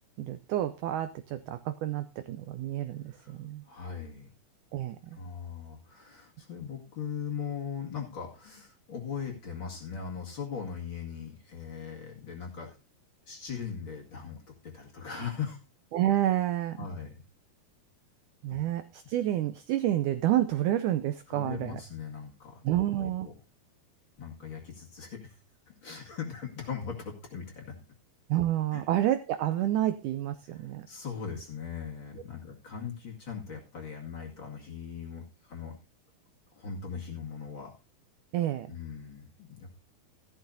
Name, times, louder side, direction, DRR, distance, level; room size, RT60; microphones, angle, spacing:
voice 1, 0.2-3.6 4.7-5.0 15.9-16.9 18.4-21.8 22.6-23.3 28.3-30.9 38.3-38.7, right 13 dB, 80° right, 11 dB, 1.8 m, -29 dB
voice 2, 3.6-4.3 5.1-12.8 13.3-15.6 16.8-17.1 18.5-18.6 21.3-22.6 22.9-23.3 24.2-25.3 25.8-27.7 28.7-28.8 30.5-35.7 36.5-37.7 38.7-39.8, left 6 dB, 40° left, -1 dB, 2.4 m, -39 dB
14.5 x 12.0 x 2.7 m, 0.31 s
omnidirectional pair, 4.2 m